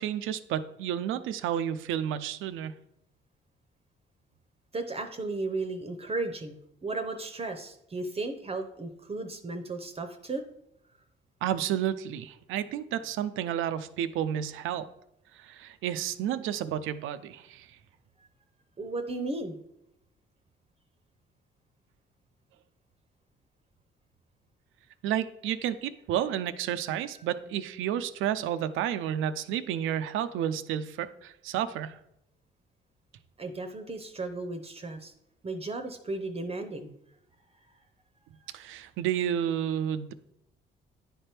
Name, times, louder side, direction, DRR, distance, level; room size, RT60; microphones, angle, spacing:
voice 1, 0.0-2.7 11.4-14.9 15.3-17.7 25.0-31.9 38.5-40.1, right 10 dB, 85° right, 12 dB, 0.5 m, -31 dB
voice 2, 4.7-10.4 18.8-19.6 33.4-35.1 35.4-36.9, right 2 dB, 30° right, 6 dB, 0.7 m, -35 dB
9.9 x 3.4 x 4.4 m, 0.81 s
cardioid pair, 90°, 20 cm